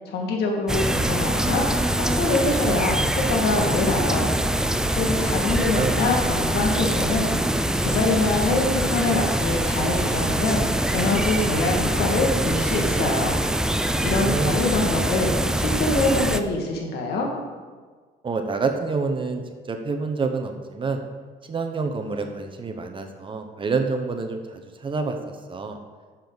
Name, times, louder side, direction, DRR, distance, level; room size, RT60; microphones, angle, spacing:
voice 1, 0.1-4.3 4.9-7.3 7.8-10.6 10.9-13.4 14.0-17.3, left 3 dB, 70° left, 1 dB, 2.1 m, -24 dB
sound 1, 0.7-16.4, right 1 dB, 5° right, 0.5 m, -24 dB
voice 2, 5.0-5.4 5.7-6.0 11.3-11.5 14.0-14.6 18.2-19.4 19.7-21.0 21.4-25.2 25.5-25.8, right 4 dB, 30° right, 5 dB, 0.9 m, -28 dB
11.5 x 7.0 x 4.1 m, 1.5 s
cardioid pair, 110°, 17 cm